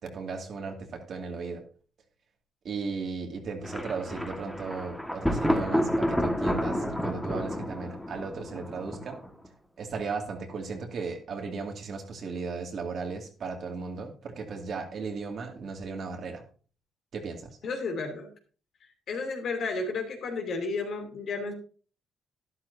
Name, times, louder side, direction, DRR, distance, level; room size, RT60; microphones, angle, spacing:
voice 1, 0.0-1.6 2.6-9.2 9.8-16.4 17.1-17.6, right 4 dB, 60° right, 3 dB, 2.4 m, -36 dB
Thunder, 3.6-9.5, equal, 5° left, 1.7 m, -30 dB
voice 2, 17.6-18.3 19.1-21.5, left 3 dB, 65° left, 3 dB, 3.0 m, -32 dB
12.0 x 11.0 x 2.8 m, 0.38 s
cardioid pair, 90°, 0 cm